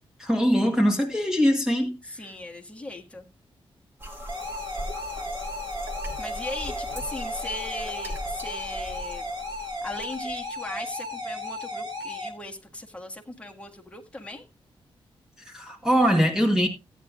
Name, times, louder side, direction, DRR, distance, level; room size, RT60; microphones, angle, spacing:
voice 1, 0.2-2.0 15.5-16.7, equal, 5° right, 1.4 m, -22 dB
voice 2, 2.0-3.3 6.2-14.5, left 2 dB, 10° left, 1.6 m, -38 dB
sound 1, 4.0-10.6, equal, 20° right, 2.2 m, -38 dB
sound 2, 4.3-12.3, left 1 dB, 45° right, 4.8 m, -35 dB
15.5 x 9.3 x 2.4 m
wide cardioid pair, 140°, 9 cm